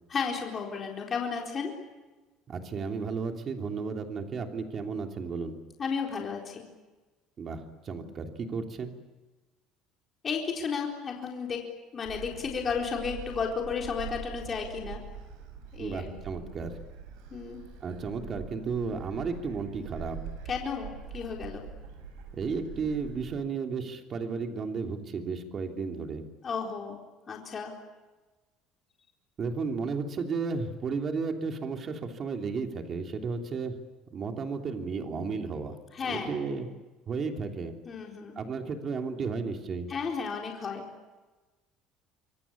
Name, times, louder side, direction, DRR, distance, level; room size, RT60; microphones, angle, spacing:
voice 1, 0.1-1.7 5.8-6.6 10.2-11.6 11.9-15.0 15.7-16.1 17.3-17.6 20.5-21.6 26.4-27.0 27.3-27.7 35.9-36.4 37.8-38.4 39.9-40.9, left 6 dB, 30° left, 0 dB, 4.1 m, -33 dB
voice 2, 2.5-5.6 7.4-7.6 7.9-8.9 15.8-16.7 17.8-20.2 22.3-26.2 29.4-33.7 34.1-35.8 36.1-36.7 37.1-37.7 38.4-39.9, right 5 dB, 35° right, 4 dB, 3.1 m, -33 dB
Gull seagull, 12.0-23.2, right 6 dB, 85° right, 7.9 m, -44 dB
26.0 x 23.5 x 8.7 m, 1.2 s
cardioid pair, 145°, 0 cm